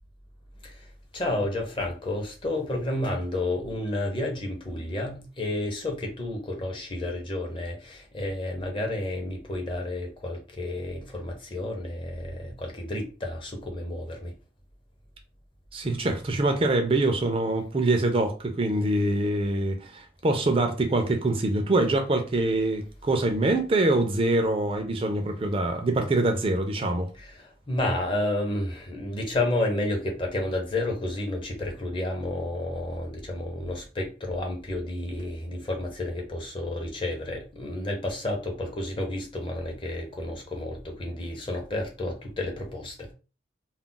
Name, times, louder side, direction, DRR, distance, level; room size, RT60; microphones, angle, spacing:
voice 1, 1.1-14.3 27.2-43.1, left 1 dB, 25° left, 0.6 m, -31 dB
voice 2, 15.7-27.1, right 2 dB, 30° right, 0.4 m, -24 dB
2.3 x 2.1 x 3.7 m
head